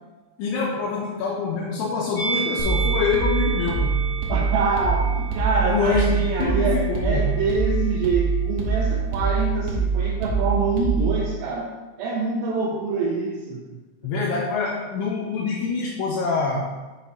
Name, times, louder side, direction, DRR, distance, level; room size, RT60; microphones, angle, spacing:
voice 1, 0.4-4.0 5.7-7.3 14.0-16.7, left 5 dB, 80° left, -3 dB, 2.8 m, -25 dB
Musical instrument, 2.1-7.4 7.6-7.9, right 4 dB, 45° left, 1.8 m, -32 dB
sound 1, 2.6-11.3, right 5 dB, 75° right, 3.0 m, -24 dB
voice 2, 4.3-11.7 12.0-13.6, right 3 dB, 90° right, -4 dB, 3.5 m, -25 dB
8.0 x 5.7 x 2.8 m, 1.2 s
omnidirectional pair, 5.8 m